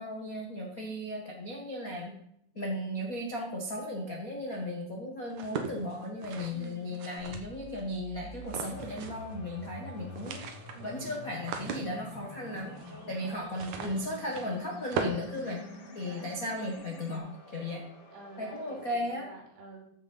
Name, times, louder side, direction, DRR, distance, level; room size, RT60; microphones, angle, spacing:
voice 1, 0.0-2.2 2.5-10.4 10.8-12.8 13.1-15.6 15.9-17.8 18.4-19.3, left 1 dB, 75° left, 0 dB, 0.7 m, -36 dB
sound 1, 5.3-7.8 8.4-9.3 9.6-9.7 10.0-16.1, right 6 dB, 65° right, 2.1 m, -40 dB
voice 2, 6.5-7.0 10.7-11.2 12.9-13.6 15.3-16.4 18.1-19.9, right 1 dB, 85° right, 0 dB, 5.4 m, -49 dB
sound 2, 7.2-17.2, left 2 dB, 60° left, 1.2 m, -48 dB
sound 3, 8.7-18.9, left 1 dB, 45° left, 3.1 m, -55 dB
14.5 x 6.3 x 5.5 m, 0.74 s
omnidirectional pair, 4.6 m